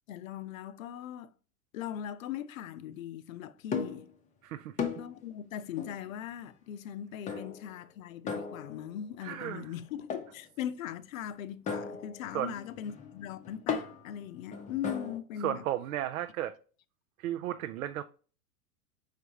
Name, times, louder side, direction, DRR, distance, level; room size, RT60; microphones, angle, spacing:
voice 1, 0.1-1.3 1.7-4.1 5.0-15.7, left 10 dB, 60° left, 0.6 m, -40 dB
sound 1, 3.7-4.1 4.8-5.2 5.8-6.1 7.3-7.7 8.3-9.0 10.1-10.4 11.7-15.2, left 6 dB, 15° left, 0.6 m, -37 dB
voice 2, 4.4-4.9 9.2-9.7 12.3-12.5 15.4-16.6 17.2-18.0, right 12 dB, 65° right, 0.5 m, -34 dB
5.0 x 3.3 x 2.7 m
hypercardioid pair, 100°, 45 cm